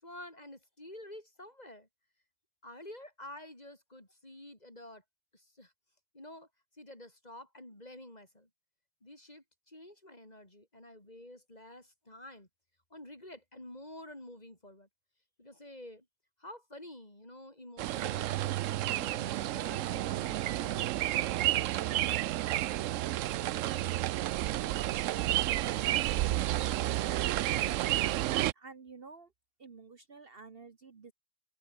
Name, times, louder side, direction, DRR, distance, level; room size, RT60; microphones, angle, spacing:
voice 1, 0.0-1.9 2.6-5.0 5.3-5.7 6.1-6.5 6.7-8.5 9.0-12.5 12.9-14.9 15.4-16.1 16.4-18.4 18.9-21.2, left 1 dB, 30° left, 5.4 m, -49 dB
sound 1, 17.8-28.5, right 14 dB, 80° right, 0.9 m, -31 dB
voice 2, 27.5-29.3 29.6-31.1, right 4 dB, 50° right, 1.4 m, -51 dB
omnidirectional pair, 1.3 m